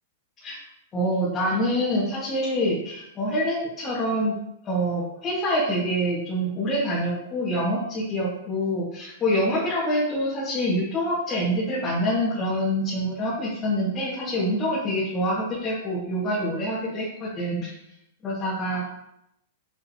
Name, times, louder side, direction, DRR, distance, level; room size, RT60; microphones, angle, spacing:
voice 1, 0.9-4.4 4.6-17.7 18.2-18.9, equal, 20° left, -8 dB, 1.9 m, -26 dB
7.1 x 6.6 x 2.9 m, 0.80 s
supercardioid pair, 155°, 0 cm